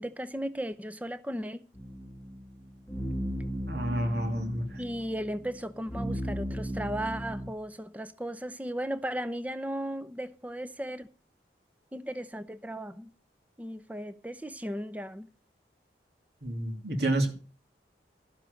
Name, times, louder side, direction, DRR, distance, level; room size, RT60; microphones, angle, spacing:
voice 1, 0.0-1.6 4.8-11.1 11.9-13.1 13.6-15.3, equal, 10° right, 0.6 m, -36 dB
sound 1, 1.7-7.5, equal, 15° left, 1.4 m, -36 dB
voice 2, 3.7-4.8 16.4-17.3, right 1 dB, 70° right, 2.7 m, -29 dB
12.0 x 7.5 x 6.6 m
head